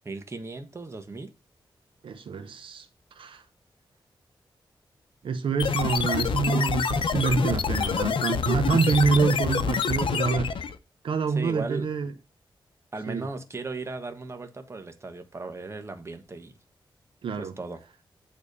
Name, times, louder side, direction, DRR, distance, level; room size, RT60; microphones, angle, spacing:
voice 1, 0.0-1.3 7.3-7.6 11.3-11.9 12.9-16.5 17.3-17.8, right 3 dB, 30° right, 1.3 m, -37 dB
voice 2, 2.0-2.9 3.2-3.4 5.2-10.5 11.0-12.1 13.1-13.3 17.2-17.5, right 5 dB, 85° right, 0.9 m, -26 dB
sound 1, 5.6-10.8, left 6 dB, 85° left, 0.7 m, -26 dB
9.1 x 3.5 x 6.6 m
wide cardioid pair, 115°, 9 cm